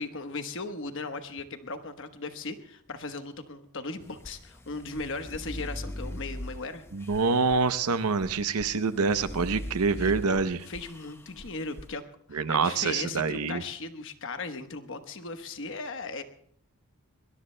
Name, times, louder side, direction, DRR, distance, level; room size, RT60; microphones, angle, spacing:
voice 1, 0.0-6.8 10.0-12.0 12.3-16.2, left 3 dB, 60° left, 7 dB, 1.1 m, -37 dB
sound 1, 4.0-11.9, left 1 dB, 10° left, 0.6 m, -41 dB
voice 2, 6.9-10.6 12.3-13.6, right 4 dB, 85° right, 12 dB, 0.7 m, -26 dB
22.0 x 21.0 x 2.2 m, 0.62 s
head